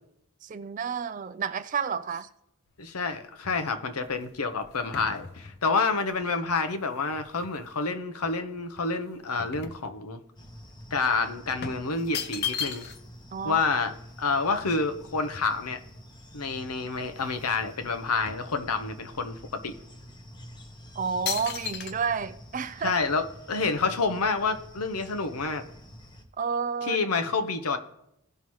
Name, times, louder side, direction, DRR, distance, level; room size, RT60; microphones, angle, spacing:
voice 1, 0.4-2.3 13.3-13.6 21.0-23.0 26.4-27.0, right 6 dB, 35° right, 0.3 m, -30 dB
sound 1, 2.7-7.8 8.2-10.4 10.7-10.9 11.6-13.2 13.5-13.6 13.8-15.9 16.5-16.6 16.8-17.6 17.9-19.1 19.7-19.8 20.5-20.7 21.3-21.9, left 7 dB, 45° left, 0.6 m, -38 dB
voice 2, 2.8-10.2 10.9-12.9 13.4-15.8 16.3-19.4 19.6-19.7 22.8-25.6 26.8-27.8, left 4 dB, 85° left, 0.8 m, -28 dB
sound 2, 10.4-26.2, equal, 20° left, 0.8 m, -48 dB
16.0 x 5.6 x 3.1 m
head